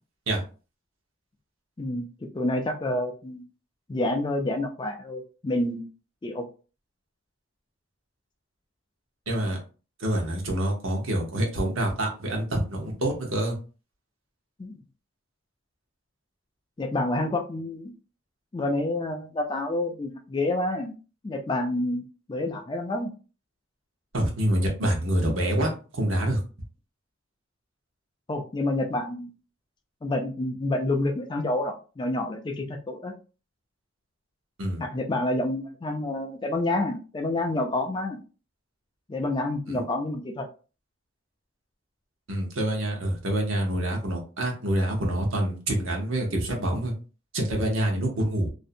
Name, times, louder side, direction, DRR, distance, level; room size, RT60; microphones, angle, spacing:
voice 1, 2.3-3.4 3.9-5.9 6.2-6.5 14.6-14.8 16.8-17.9 18.5-20.9 21.2-23.1 28.3-29.3 30.0-33.1 34.8-38.2 39.1-40.5, left 2 dB, 20° left, 4 dB, 0.3 m, -28 dB
voice 2, 9.3-9.6 10.0-13.6 24.1-26.4 34.6-34.8 39.7-39.8 42.3-46.9 47.3-48.5, right 1 dB, 75° right, 1 dB, 0.8 m, -26 dB
2.6 x 2.1 x 2.5 m, 0.35 s
head